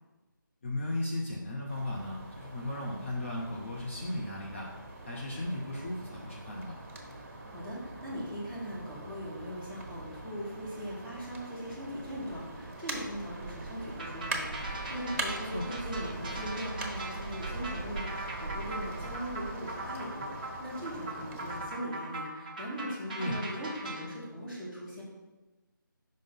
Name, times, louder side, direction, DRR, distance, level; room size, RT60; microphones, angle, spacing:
voice 1, 0.6-4.7 5.0-6.8 15.5-15.7 23.2-23.5, left 1 dB, 35° left, -2 dB, 0.8 m, -36 dB
sound 1, 1.7-21.7, right 2 dB, 40° right, 1.1 m, -42 dB
voice 2, 7.5-25.0, equal, 5° left, -11 dB, 1.2 m, -40 dB
sound 2, 14.0-24.1, right 2 dB, 25° right, 0.7 m, -41 dB
5.2 x 3.7 x 5.3 m, 1.1 s
figure-of-eight pair, 160°, 11 cm